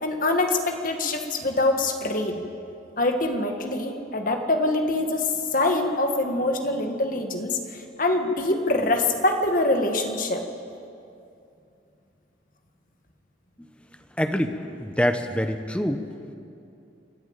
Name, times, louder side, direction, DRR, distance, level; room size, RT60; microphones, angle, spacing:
voice 1, 0.0-2.4 3.0-7.6 8.0-10.4, left 2 dB, 45° left, 4 dB, 1.9 m, -24 dB
voice 2, 14.2-16.0, equal, 5° left, 7 dB, 0.9 m, -25 dB
28.5 x 10.5 x 8.9 m, 2.6 s
head